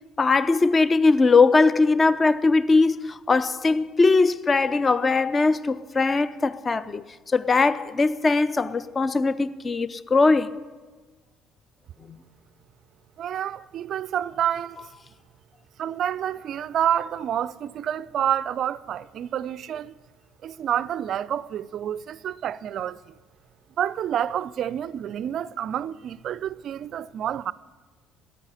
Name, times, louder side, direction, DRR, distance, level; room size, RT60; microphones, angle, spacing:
voice 1, 0.2-10.5 12.0-12.2, left 3 dB, 30° left, 0.6 m, -20 dB
voice 2, 13.2-14.9 15.8-19.9 20.4-23.1 23.8-27.5, right 10 dB, 50° right, 0.3 m, -28 dB
10.0 x 8.8 x 9.9 m
figure-of-eight pair, 55°, 0 cm